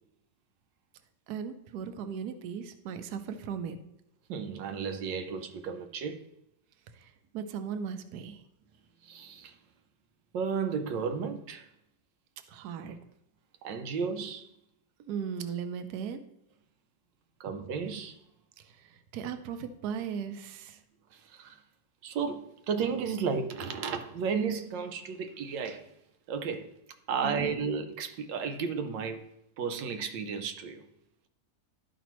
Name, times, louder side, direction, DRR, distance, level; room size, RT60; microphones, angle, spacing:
voice 1, 1.3-3.8 6.9-8.4 12.5-13.0 15.1-16.2 18.6-20.8 27.2-27.6, right 7 dB, 70° right, 1.2 m, -37 dB
voice 2, 4.3-6.2 9.0-9.5 10.3-11.7 13.6-14.5 17.4-18.2 21.1-21.6 22.0-25.9 26.3-26.7 27.1-29.2 29.6-30.8, right 6 dB, 85° right, 1.4 m, -33 dB
12.0 x 5.0 x 3.0 m
omnidirectional pair, 1.9 m